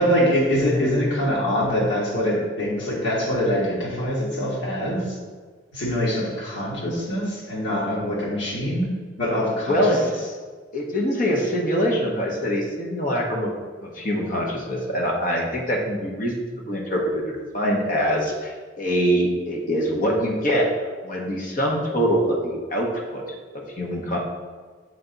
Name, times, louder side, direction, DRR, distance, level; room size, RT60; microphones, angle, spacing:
voice 1, 0.0-5.2 5.7-8.9 9.2-10.0, equal, 80° left, -6 dB, 1.7 m, -24 dB
voice 2, 9.7-10.2 10.7-13.5 13.8-20.7 21.0-23.2 23.8-24.2, equal, 50° left, -1 dB, 1.0 m, -24 dB
7.0 x 3.4 x 4.0 m, 1.5 s
head